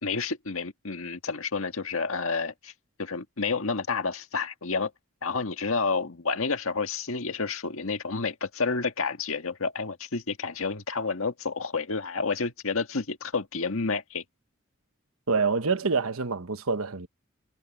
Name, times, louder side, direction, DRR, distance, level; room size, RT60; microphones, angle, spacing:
voice 1, 0.0-2.7 3.0-4.9 5.2-14.2, left 4 dB, 75° left, 1.7 m, -30 dB
voice 2, 15.3-17.1, right 4 dB, 80° right, 1.2 m, -26 dB
head